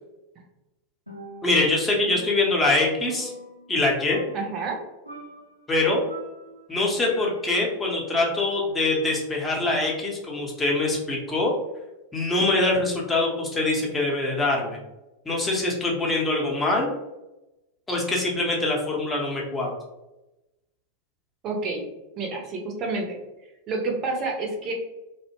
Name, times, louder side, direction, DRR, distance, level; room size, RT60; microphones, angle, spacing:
Percussion, 1.1-1.7 2.1-3.8 4.1-4.8 5.1-5.6 6.1-7.6 8.1-8.7, right 1 dB, 85° right, 0.5 m, -42 dB
voice 1, 1.4-3.3 3.7-4.2 5.7-6.0 6.7-11.5 12.1-14.8 15.2-16.9 17.9-19.7, left 2 dB, 15° left, -2 dB, 0.7 m, -24 dB
voice 2, 4.3-4.8 21.4-21.8 22.2-23.2 23.7-24.7, right 3 dB, 35° right, 1 dB, 0.6 m, -29 dB
2.7 x 2.1 x 2.9 m, 0.99 s
figure-of-eight pair, 90°, 0 cm